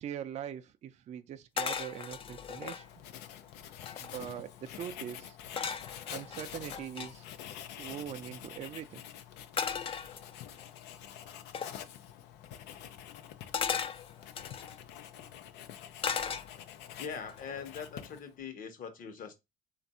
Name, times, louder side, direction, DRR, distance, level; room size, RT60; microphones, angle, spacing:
voice 1, 0.0-2.9 4.0-5.4 6.1-7.2 7.8-9.0, right 9 dB, 45° right, 0.4 m, -42 dB
sound 1, 1.6-2.8 3.4-3.5 3.7-4.3 5.6-7.1 9.6-10.6 11.5-11.8 13.5-14.8 16.0-16.8 17.3-17.6, left 7 dB, 35° left, 0.4 m, -36 dB
Writing, 2.2-18.4, left 10 dB, 85° left, 0.5 m, -47 dB
voice 2, 17.0-19.3, left 6 dB, 55° left, 1.0 m, -42 dB
3.4 x 2.5 x 4.1 m
cardioid pair, 110°, 17 cm